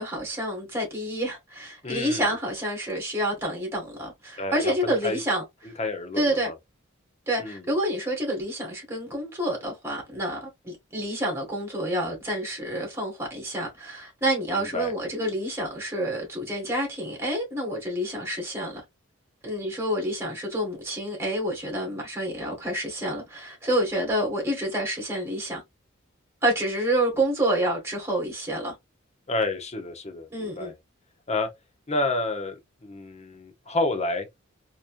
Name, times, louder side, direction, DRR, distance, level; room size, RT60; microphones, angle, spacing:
voice 1, 0.0-5.7 6.2-6.5 7.3-18.8 19.4-25.6 26.4-28.7 30.3-30.7, right 1 dB, 10° right, 2.0 m, -28 dB
voice 2, 1.8-2.3 4.4-5.2 5.8-6.5 7.4-7.7 14.5-14.9 29.3-30.7 31.3-31.5 31.9-34.3, left 2 dB, 30° left, 1.0 m, -29 dB
4.1 x 3.1 x 2.5 m
head